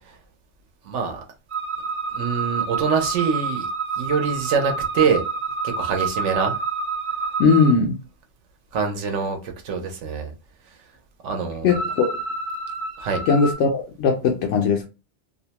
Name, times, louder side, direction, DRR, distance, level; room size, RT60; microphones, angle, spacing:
voice 1, 0.8-1.2 2.1-3.7 4.0-5.2 5.6-6.6 8.7-10.3 11.2-11.8 13.0-13.2, right 5 dB, 90° right, 1.0 m, -24 dB
sound 1, 1.5-7.7 11.7-13.5, right 4 dB, 65° right, 0.9 m, -28 dB
voice 2, 7.4-8.0 11.6-12.1 13.3-14.9, left 5 dB, 90° left, 0.9 m, -19 dB
2.7 x 2.1 x 2.8 m
omnidirectional pair, 1.2 m